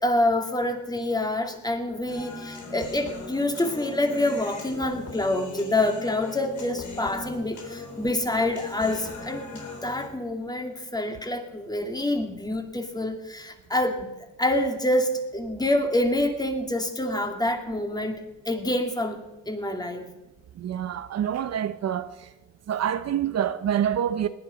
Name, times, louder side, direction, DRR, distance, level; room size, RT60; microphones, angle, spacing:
voice 1, 0.0-14.1 14.4-20.1, left 1 dB, 15° left, 2.3 m, -27 dB
Human voice, 2.1-10.1, left 4 dB, 75° left, 3.9 m, -39 dB
voice 2, 20.6-22.3 22.7-24.3, right 9 dB, 60° right, 0.8 m, -27 dB
18.5 x 10.5 x 5.1 m
cardioid pair, 90°, 30 cm